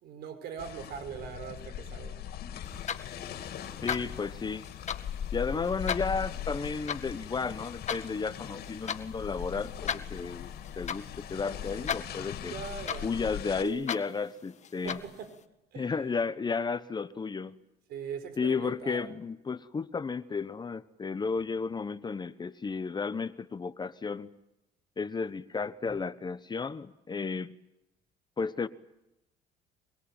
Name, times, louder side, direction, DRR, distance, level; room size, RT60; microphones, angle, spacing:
voice 1, 0.0-2.2 12.5-13.1 13.6-13.9 14.8-15.4 15.7-15.9 17.9-19.1 25.9-26.0, right 7 dB, 70° right, 5.0 m, -41 dB
sound 1, 0.6-13.6, left 9 dB, 65° left, 2.9 m, -40 dB
sound 2, 2.6-15.4, left 8 dB, 45° left, 1.8 m, -39 dB
voice 2, 3.8-4.7 5.3-10.5 10.8-12.5 13.0-15.0 15.8-17.6 18.4-24.3 25.0-27.5 28.4-28.7, left 5 dB, 25° left, 1.1 m, -33 dB
24.0 x 23.0 x 8.9 m
cardioid pair, 110°, 17 cm